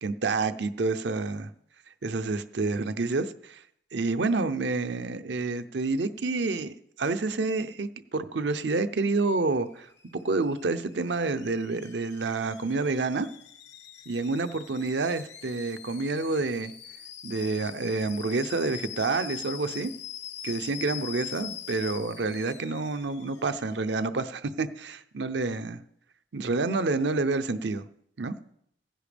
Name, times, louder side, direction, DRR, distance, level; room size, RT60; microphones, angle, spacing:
voice 1, 0.0-1.5 2.0-3.6 3.9-9.9 10.1-13.3 14.1-16.7 17.2-19.9 20.4-25.8 26.3-27.8 28.2-28.3, right 3 dB, 75° right, 10 dB, 0.6 m, -28 dB
Alarm / Boiling, 9.2-24.1, left 11 dB, 70° left, 1.2 m, -44 dB
16.0 x 10.0 x 3.4 m, 0.70 s
head